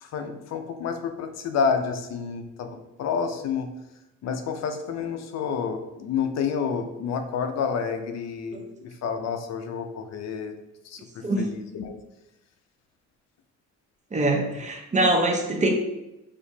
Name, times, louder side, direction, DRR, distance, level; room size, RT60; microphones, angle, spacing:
voice 1, 0.0-3.7 4.2-10.5 10.8-12.0, left 6 dB, 60° left, 7 dB, 0.7 m, -29 dB
voice 2, 14.1-15.7, right 1 dB, 25° right, 1 dB, 0.9 m, -23 dB
6.3 x 2.9 x 2.8 m, 0.92 s
cardioid pair, 100°, 30 cm